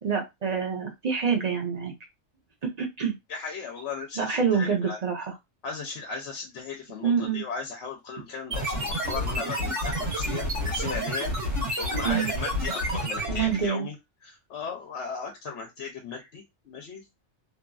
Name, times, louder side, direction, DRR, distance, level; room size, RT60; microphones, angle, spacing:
voice 1, 0.0-1.9 2.6-3.1 4.2-5.3 7.0-7.4 11.9-12.3 13.3-13.9, right 6 dB, 40° right, 2 dB, 0.7 m, -26 dB
voice 2, 3.3-5.0 5.6-13.9 14.2-17.0, left 5 dB, 75° left, 2 dB, 0.9 m, -37 dB
sound 1, 8.5-13.7, equal, 75° right, 1.4 m, -29 dB
2.9 x 2.5 x 2.3 m, 0.20 s
omnidirectional pair, 1.2 m